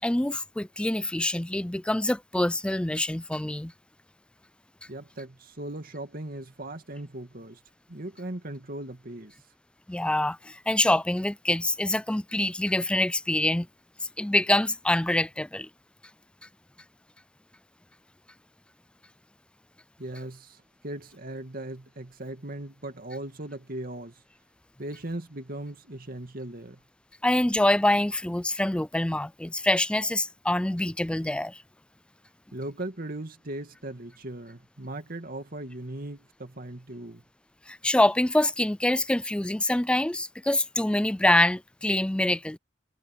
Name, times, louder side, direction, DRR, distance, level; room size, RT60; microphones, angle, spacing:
voice 1, 0.0-3.7 9.9-13.7 14.2-15.7 27.2-31.6 37.7-42.6, left 1 dB, 5° left, 0.3 m, -25 dB
voice 2, 4.9-7.6 7.9-9.3 20.0-24.2 24.8-26.8 32.5-37.2, right 1 dB, 50° right, 2.3 m, -38 dB
head